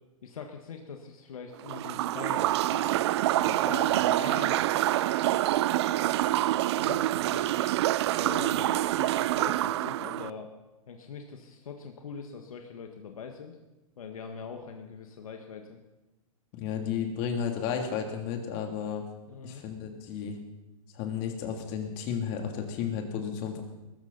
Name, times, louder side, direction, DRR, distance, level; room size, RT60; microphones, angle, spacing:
voice 1, 0.2-3.0 3.3-4.7 5.8-6.3 6.7-7.7 8.1-10.5 10.9-13.6 14.0-15.8 19.3-19.6, left 6 dB, 75° left, 4 dB, 1.7 m, -42 dB
sound 1, 1.6-10.3, right 14 dB, 50° right, 0.4 m, -26 dB
voice 2, 16.5-19.0 19.4-20.4 20.9-23.6, left 7 dB, 40° left, 3 dB, 3.0 m, -33 dB
21.0 x 13.5 x 4.2 m, 1.0 s
hypercardioid pair, 125°, 18 cm